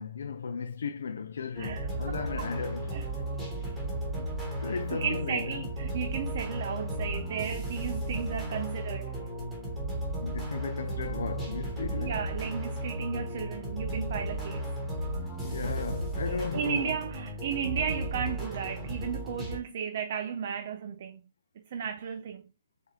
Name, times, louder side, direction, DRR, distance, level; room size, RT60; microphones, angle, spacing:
voice 1, 0.0-3.0 4.2-4.3 4.6-5.6 10.2-12.2 15.4-16.9, left 5 dB, 80° left, 0.4 m, -36 dB
sound 1, 1.6-19.6, right 1 dB, 5° right, 1.1 m, -34 dB
voice 2, 1.6-2.2 2.9-3.1 4.7-9.1 12.0-14.7 16.3-21.2 21.7-22.4, right 7 dB, 45° right, 0.4 m, -34 dB
4.1 x 3.7 x 3.2 m
hypercardioid pair, 175°, 0 cm